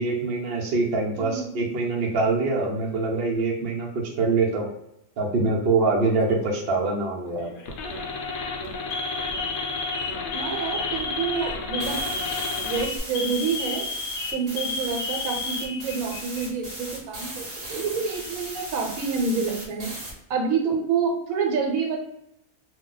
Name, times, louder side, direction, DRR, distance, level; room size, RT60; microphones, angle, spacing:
voice 1, 0.0-3.9 4.2-4.7 5.2-7.5, right 3 dB, 55° right, -1 dB, 0.7 m, -24 dB
voice 2, 1.2-1.8 10.3-12.0 12.6-13.8 14.3-19.9 20.3-22.0, right 5 dB, 80° right, 2 dB, 1.1 m, -28 dB
Alarm, 6.0-6.5 7.4-7.7 8.1-8.3 8.9-16.5 16.8-16.9 17.8-18.5, left 3 dB, 90° left, 1.1 m, -33 dB
sound 1, 7.7-13.0, left 4 dB, 65° left, 0.8 m, -32 dB
sound 2, 11.8-20.1, right 1 dB, 30° right, 1.0 m, -38 dB
2.4 x 2.2 x 3.7 m, 0.79 s
omnidirectional pair, 1.5 m